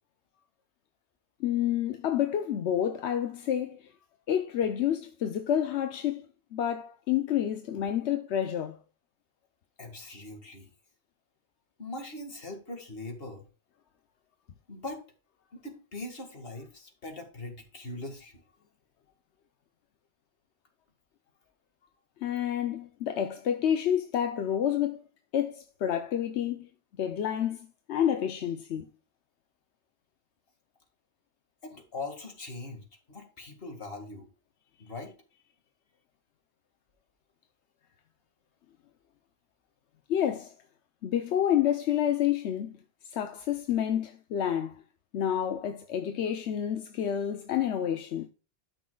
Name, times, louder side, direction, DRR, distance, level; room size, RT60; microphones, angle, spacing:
voice 1, 1.4-3.9 4.3-6.2 6.5-8.8 22.2-25.0 25.3-26.7 27.0-28.8 40.1-40.5 41.0-42.8 43.1-44.7 45.1-48.3, left 10 dB, 85° left, 1.0 m, -29 dB
voice 2, 9.8-10.7 11.8-13.4 14.7-15.0 15.5-18.4 31.6-34.3 34.8-35.1, left 2 dB, 60° left, 2.2 m, -41 dB
13.0 x 6.2 x 2.3 m
omnidirectional pair, 1.1 m